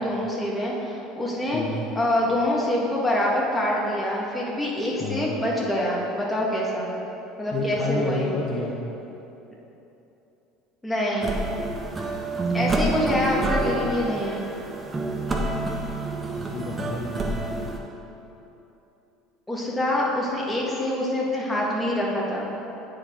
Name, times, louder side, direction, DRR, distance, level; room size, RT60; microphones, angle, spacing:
voice 1, 0.0-1.6 1.9-6.9 7.4-8.3 10.8-11.4 12.5-14.4 19.5-22.5, left 1 dB, 10° left, -4 dB, 1.7 m, -25 dB
voice 2, 1.5-1.9 5.0-5.4 7.5-8.8 12.6-12.9 16.4-17.4, left 3 dB, 40° left, -1 dB, 0.7 m, -30 dB
sound 1, 11.2-17.8, right 2 dB, 25° right, 0.9 m, -28 dB
9.5 x 5.0 x 3.8 m, 3.0 s
supercardioid pair, 95°, 0 cm